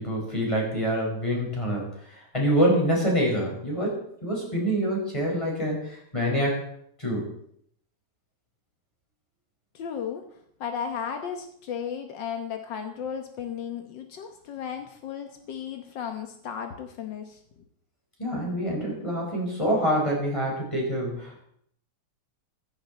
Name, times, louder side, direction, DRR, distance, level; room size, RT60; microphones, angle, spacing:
voice 1, 0.0-6.6 7.0-7.3 18.2-21.5, equal, 10° left, -2 dB, 5.1 m, -26 dB
voice 2, 9.7-10.2 10.6-17.4, left 7 dB, 75° left, 6 dB, 1.0 m, -34 dB
15.0 x 14.5 x 4.2 m, 0.67 s
omnidirectional pair, 3.4 m